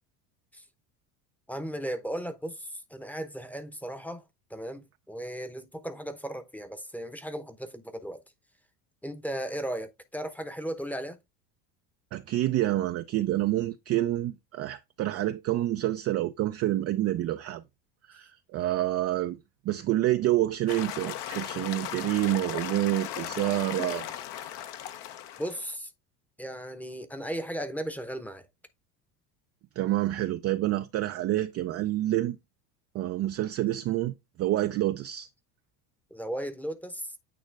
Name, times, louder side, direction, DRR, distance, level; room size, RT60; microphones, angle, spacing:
voice 1, 1.5-8.2 9.0-11.2 25.4-25.9 26.4-28.5 36.1-37.1, right 1 dB, 5° left, 0.8 m, -36 dB
voice 2, 12.1-17.6 18.1-19.4 19.6-24.1 29.8-32.4 32.9-35.3, right 15 dB, 35° right, 0.4 m, -28 dB
sound 1, 20.7-25.7, left 11 dB, 55° left, 0.9 m, -37 dB
9.1 x 3.1 x 3.4 m
hypercardioid pair, 85°, 48 cm